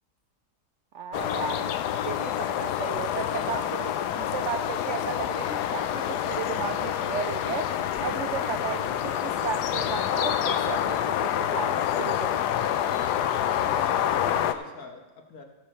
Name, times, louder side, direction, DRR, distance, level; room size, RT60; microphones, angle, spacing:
voice 1, 0.9-1.7 2.0-12.7, right 7 dB, 85° right, 7 dB, 0.6 m, -35 dB
sound 1, 1.1-14.5, left 10 dB, 80° left, 1.2 m, -27 dB
voice 2, 13.5-15.4, left 4 dB, 60° left, 4 dB, 1.5 m, -42 dB
15.0 x 7.0 x 4.3 m, 1.1 s
omnidirectional pair, 1.8 m